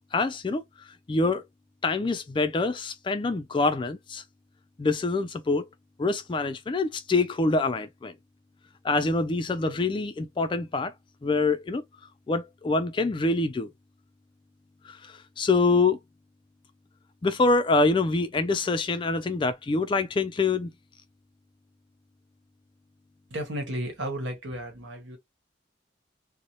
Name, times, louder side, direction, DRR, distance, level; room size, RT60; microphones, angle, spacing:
voice 1, 0.1-0.6 1.1-1.4 1.8-4.2 4.8-5.7 6.0-8.1 8.8-10.9 11.2-11.8 12.3-13.7 14.8-16.0 17.2-20.7, left 3 dB, 25° left, 0.3 m, -25 dB
voice 2, 23.3-25.2, right 1 dB, 80° right, 1.1 m, -33 dB
2.7 x 2.1 x 2.8 m
head